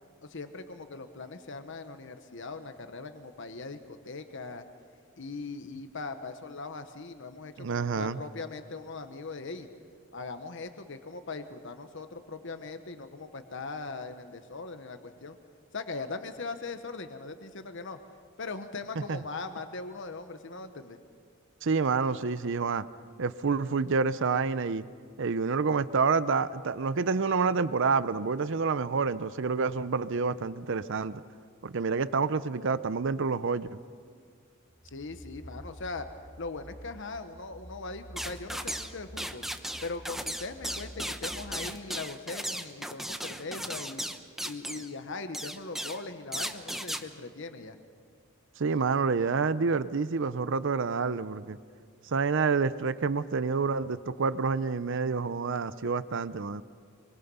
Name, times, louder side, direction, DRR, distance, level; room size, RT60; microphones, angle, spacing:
voice 1, 0.2-4.6 5.2-9.7 10.1-15.4 15.7-18.0 18.4-21.0 34.8-36.1 36.4-39.5 39.8-44.0 44.4-47.8, left 3 dB, 60° left, 8 dB, 1.1 m, -40 dB
voice 2, 7.6-8.2 19.0-19.2 21.6-22.9 23.2-24.8 25.2-31.2 31.6-33.8 48.6-51.6 52.1-56.6, right 4 dB, 60° right, 15 dB, 0.6 m, -28 dB
sound 1, 34.7-41.5, equal, 20° left, 2.2 m, -49 dB
sound 2, 38.2-38.9 39.2-44.9 45.3-46.0 46.3-47.0, equal, ahead, 0.9 m, -36 dB
24.5 x 24.0 x 5.5 m, 2.1 s
head